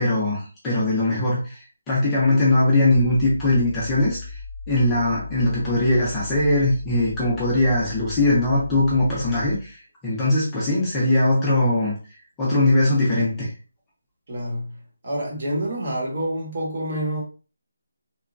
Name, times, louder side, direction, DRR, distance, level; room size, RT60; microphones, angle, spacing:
voice 1, 0.0-4.4 4.7-12.0 12.4-13.5, left 2 dB, 10° left, 0.5 m, -21 dB
sound 1, 2.9-9.7, left 4 dB, 60° right, 0.7 m, -37 dB
voice 2, 14.3-14.8 15.0-17.2, right 1 dB, 35° right, 0.9 m, -27 dB
2.9 x 2.1 x 2.4 m
figure-of-eight pair, 175°, 0 cm